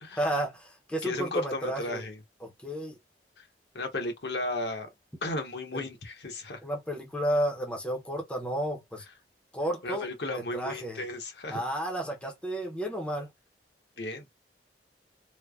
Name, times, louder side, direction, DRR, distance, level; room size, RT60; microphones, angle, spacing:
voice 1, 0.1-2.0 2.4-3.0 5.7-5.8 6.6-9.0 9.5-11.0 11.5-13.3, right 1 dB, 5° left, 0.5 m, -32 dB
voice 2, 1.0-2.2 3.4-3.5 3.7-4.9 5.2-6.6 9.8-11.6 14.0-14.2, left 2 dB, 70° left, 0.9 m, -34 dB
3.2 x 2.1 x 2.3 m
head